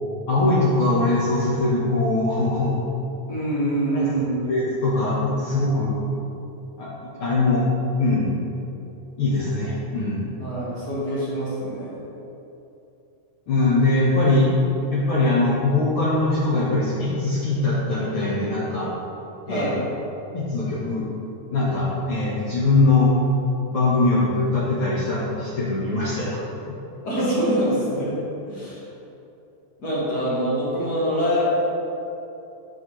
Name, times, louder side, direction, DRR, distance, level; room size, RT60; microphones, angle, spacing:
voice 1, 0.3-2.7 3.9-4.1 4.5-6.0 6.8-6.9 7.2-7.6 8.0-8.3 9.2-10.2 13.5-14.5 14.9-18.9 19.5-19.7 20.3-21.0 21.5-23.1 23.7-26.4, left 2 dB, 60° left, -7 dB, 1.5 m, -21 dB
voice 2, 3.3-4.6 10.4-12.1 19.5-19.8 27.0-28.2 28.5-28.8 29.8-31.6, equal, 35° left, -10 dB, 2.1 m, -25 dB
13.0 x 5.1 x 3.1 m, 2.9 s
omnidirectional pair, 3.8 m